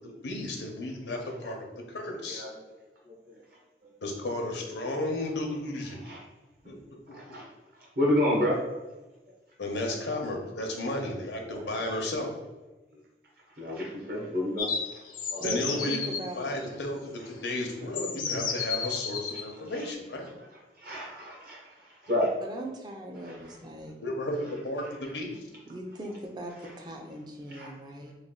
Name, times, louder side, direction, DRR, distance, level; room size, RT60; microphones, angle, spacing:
voice 1, 0.0-2.5 4.0-6.1 6.6-6.8 7.3-7.4 9.6-12.4 15.4-20.3 24.0-24.8 25.1-25.4, left 1 dB, 85° left, 2 dB, 0.7 m, -33 dB
voice 2, 7.1-7.4 8.0-8.6 13.6-14.7 15.3-15.4 20.8-21.6 22.0-22.3 27.5-27.7, left 1 dB, 55° right, -4 dB, 0.9 m, -28 dB
sound 1, 14.6-16.2 17.3-17.4 17.9-19.4, left 6 dB, 50° left, 0.4 m, -32 dB
voice 3, 15.4-16.5 22.4-24.0 25.7-28.1, equal, 25° right, 1 dB, 0.4 m, -39 dB
3.2 x 2.2 x 3.7 m, 1.1 s
head